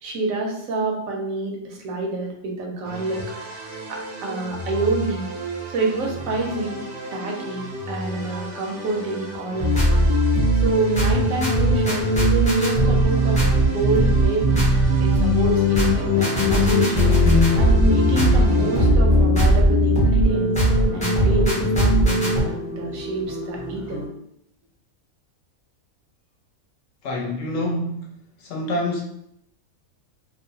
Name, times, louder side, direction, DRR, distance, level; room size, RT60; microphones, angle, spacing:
voice 1, 0.0-6.8 7.1-10.1 10.5-14.6 15.0-20.5 20.9-24.0, right 2 dB, 75° right, 0 dB, 1.0 m, -27 dB
sound 1, 2.8-18.9, right 2 dB, 60° right, 0.6 m, -33 dB
sound 2, 9.6-22.4, equal, 10° left, 0.5 m, -18 dB
sound 3, 15.4-24.1, left 1 dB, 40° left, 0.8 m, -32 dB
voice 2, 27.0-28.1 28.4-29.0, left 1 dB, 70° left, -1 dB, 0.9 m, -26 dB
2.6 x 2.0 x 2.6 m, 0.75 s
omnidirectional pair, 1.5 m